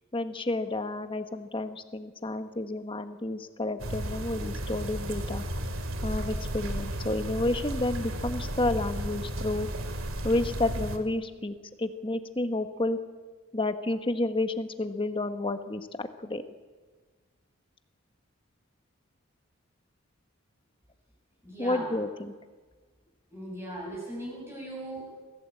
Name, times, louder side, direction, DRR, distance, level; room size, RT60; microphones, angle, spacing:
voice 1, 0.1-5.4 6.0-9.7 10.2-13.0 13.5-16.4 21.6-22.3, left 2 dB, 25° left, 9 dB, 1.3 m, -30 dB
sound 1, 3.8-11.0, right 1 dB, 70° right, 2.4 m, -34 dB
voice 2, 21.4-21.9 23.3-25.1, right 1 dB, 10° right, -4 dB, 7.4 m, -38 dB
24.5 x 16.0 x 8.5 m, 1.4 s
head